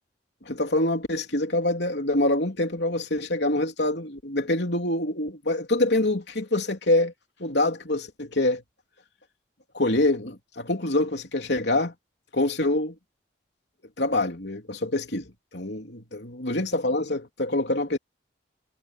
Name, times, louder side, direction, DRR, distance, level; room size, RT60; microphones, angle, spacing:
voice 1, 0.4-7.1 7.4-8.6 9.7-11.9 12.3-12.9 14.0-18.0, left 2 dB, 65° left, 3.4 m, -25 dB
head